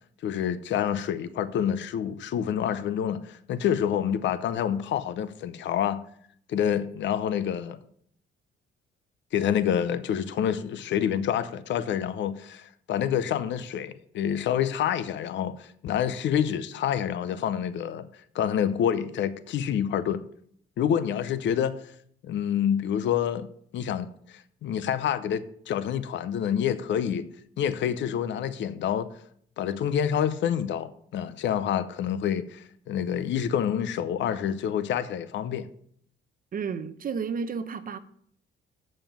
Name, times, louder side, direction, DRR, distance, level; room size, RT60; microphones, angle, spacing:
voice 1, 0.2-6.0 6.5-7.8 9.3-18.1 18.3-20.2 20.8-21.9 22.2-23.5 23.7-27.3 27.6-29.1 29.6-35.7, left 9 dB, 70° left, 0.6 m, -27 dB
voice 2, 36.5-38.0, right 6 dB, 45° right, 0.7 m, -32 dB
7.3 x 5.5 x 7.1 m
cardioid pair, 90°, 20 cm